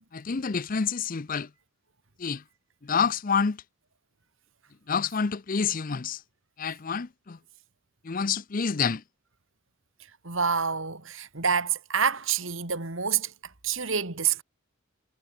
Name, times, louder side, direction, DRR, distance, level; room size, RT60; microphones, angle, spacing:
voice 1, 0.1-1.5 2.2-2.4 2.8-3.6 4.9-6.2 6.6-7.4 8.0-9.0, left 6 dB, 40° left, 0.5 m, -28 dB
voice 2, 10.2-13.3 13.6-14.4, right 6 dB, 60° right, 2.4 m, -27 dB
head